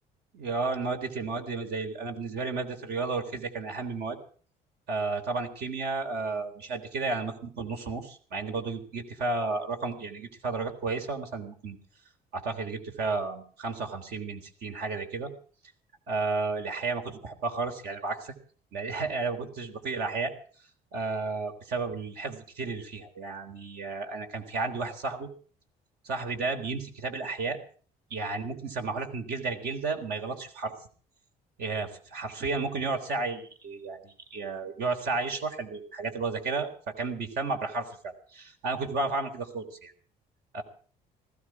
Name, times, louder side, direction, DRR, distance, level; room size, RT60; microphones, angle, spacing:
voice 1, 0.3-4.2 4.9-11.8 12.3-15.3 16.1-18.3 18.7-20.3 20.9-25.3 26.0-27.6 28.1-30.7 31.6-39.9 40.5-40.6, right 3 dB, 70° right, 5 dB, 3.8 m, -32 dB
19.5 x 15.5 x 4.8 m, 0.43 s
cardioid pair, 110°, 17 cm